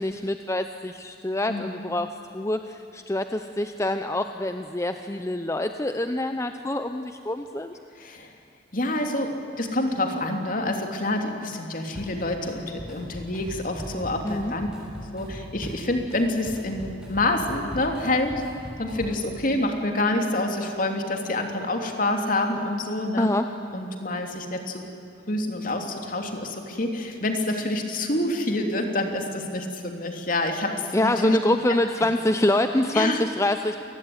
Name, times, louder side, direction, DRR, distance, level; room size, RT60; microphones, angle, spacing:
voice 1, 0.0-7.7 14.2-14.5 23.2-23.5 30.9-33.8, left 1 dB, 15° left, 8 dB, 0.7 m, -25 dB
voice 2, 8.0-8.3 8.7-14.7 15.1-18.4 18.8-23.3 23.7-24.9 25.3-31.4 32.9-33.2, left 2 dB, 50° left, 4 dB, 3.1 m, -27 dB
Drum kit, 11.9-12.5 12.8-19.3, equal, 5° right, 7.4 m, -39 dB
27.5 x 20.5 x 9.6 m, 2.6 s
head